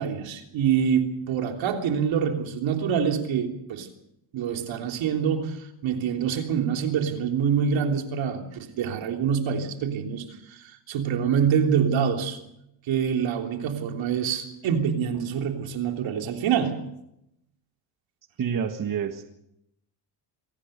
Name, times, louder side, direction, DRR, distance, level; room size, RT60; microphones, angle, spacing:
voice 1, 0.0-3.9 4.3-12.4 12.9-16.8, right 7 dB, 75° right, 4 dB, 3.4 m, -26 dB
voice 2, 18.4-19.2, right 7 dB, 45° right, 6 dB, 1.6 m, -28 dB
24.0 x 17.5 x 6.7 m, 0.81 s
cardioid pair, 110°, 46 cm